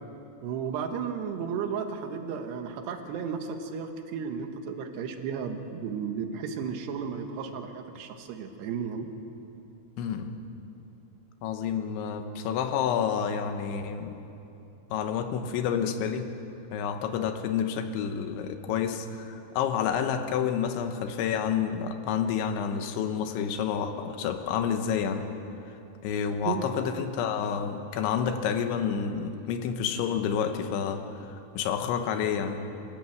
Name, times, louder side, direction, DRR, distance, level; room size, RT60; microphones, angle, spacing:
voice 1, 0.4-9.1 26.5-26.6, right 6 dB, 70° right, 6 dB, 3.1 m, -34 dB
voice 2, 10.0-10.4 11.4-14.2 14.9-16.3 16.7-25.3 26.0-32.6, left 7 dB, 80° left, 7 dB, 3.4 m, -29 dB
25.0 x 14.5 x 7.9 m, 2.9 s
omnidirectional pair, 5.4 m